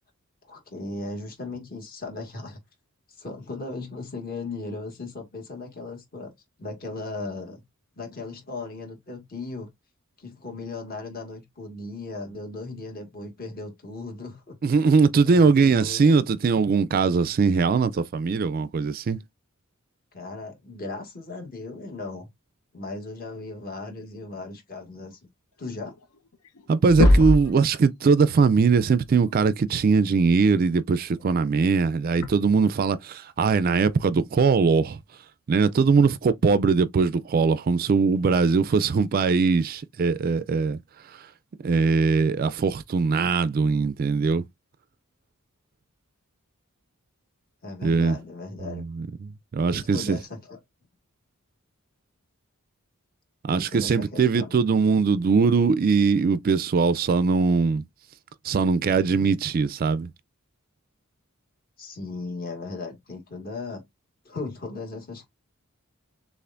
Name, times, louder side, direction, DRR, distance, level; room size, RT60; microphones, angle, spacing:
voice 1, 0.4-2.6 3.2-6.3 6.6-7.6 8.0-9.7 10.2-14.6 15.2-16.2 20.1-22.3 22.7-25.2 25.6-26.0 47.6-48.8 49.7-50.6 53.5-54.6 61.8-63.8 64.3-65.3, left 3 dB, 45° left, 1.8 m, -37 dB
voice 2, 14.6-19.2 26.7-35.0 35.5-40.8 41.0-41.3 41.6-44.4 47.8-48.2 48.6-50.2 53.5-57.8 58.4-60.1, right 4 dB, 45° right, 0.3 m, -21 dB
sound 1, 26.0-26.1 26.3-26.6 26.9-27.5 29.3-29.4 31.2-31.3 32.2-32.3, left 1 dB, 75° left, 0.7 m, -19 dB
6.6 x 2.5 x 2.5 m
head